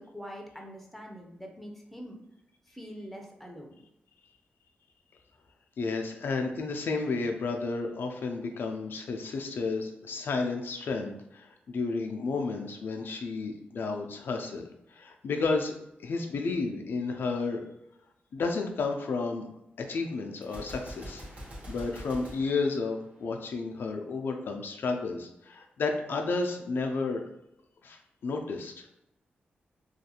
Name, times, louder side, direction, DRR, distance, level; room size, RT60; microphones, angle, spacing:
voice 1, 0.0-2.2 2.7-3.7, equal, 5° left, 1 dB, 0.5 m, -44 dB
voice 2, 5.8-15.7 16.0-17.6 18.3-19.5 19.8-21.2 21.7-27.2 27.8-28.9, left 4 dB, 70° left, 4 dB, 0.4 m, -32 dB
Gunshot gunfire, 20.4-23.5, equal, 40° right, 0.9 m, -44 dB
2.4 x 2.2 x 2.8 m, 0.82 s
cardioid pair, 90°, 4 cm